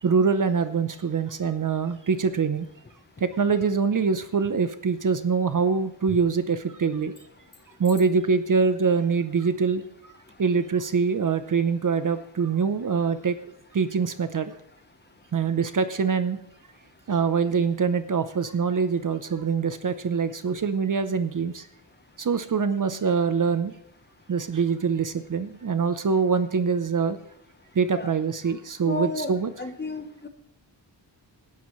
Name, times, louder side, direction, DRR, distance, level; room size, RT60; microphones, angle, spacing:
voice 1, 0.0-2.7 3.2-7.1 7.8-9.8 10.4-13.4 13.7-14.6 15.3-16.4 17.1-21.7 22.2-23.8 24.3-27.2 27.7-29.5, right 5 dB, 45° right, 11 dB, 0.7 m, -24 dB
voice 2, 28.8-29.3 29.6-30.3, left 3 dB, 25° left, 7 dB, 1.0 m, -32 dB
17.5 x 11.5 x 3.1 m, 0.74 s
wide cardioid pair, 175°, 44 cm